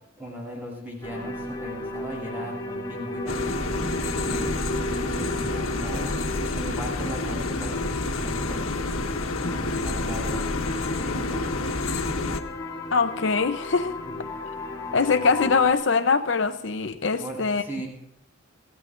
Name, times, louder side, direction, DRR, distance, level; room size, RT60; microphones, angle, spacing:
voice 1, 0.2-3.4 4.2-4.7 5.1-6.1 6.5-8.7 9.6-10.6 10.9-11.9 17.2-17.9, right 1 dB, 10° right, -3 dB, 7.9 m, -38 dB
sound 1, 1.0-15.7, left 2 dB, 20° left, 2.4 m, -35 dB
sound 2, 3.3-12.4, left 2 dB, 90° left, 1.4 m, -29 dB
voice 2, 12.9-13.9 14.9-17.6, left 4 dB, 60° left, 8 dB, 0.7 m, -22 dB
25.5 x 16.0 x 2.6 m, 0.75 s
head